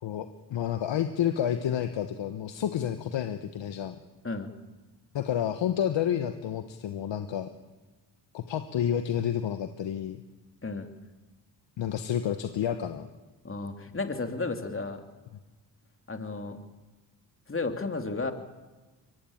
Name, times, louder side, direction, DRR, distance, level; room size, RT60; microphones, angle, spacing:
voice 1, 0.0-3.9 5.1-7.5 8.3-10.2 11.8-13.1, left 9 dB, 75° left, 8 dB, 1.2 m, -30 dB
voice 2, 13.4-15.0 16.1-16.6 17.5-18.3, left 3 dB, 30° left, 5 dB, 2.9 m, -33 dB
22.5 x 16.5 x 8.7 m, 1.2 s
cardioid pair, 60°, 45 cm